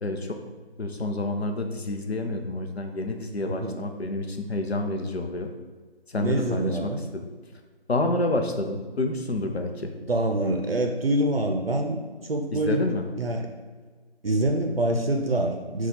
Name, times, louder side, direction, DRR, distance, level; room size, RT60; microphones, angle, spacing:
voice 1, 0.0-0.4 0.8-5.5 6.1-7.3 7.9-9.9 12.5-13.0, left 2 dB, 75° left, 4 dB, 0.6 m, -28 dB
voice 2, 3.5-3.8 6.2-7.0 10.0-12.9 13.2-13.5 14.2-15.9, right 1 dB, 65° right, 3 dB, 0.5 m, -26 dB
4.3 x 2.3 x 4.0 m, 1.5 s
figure-of-eight pair, 170°, 32 cm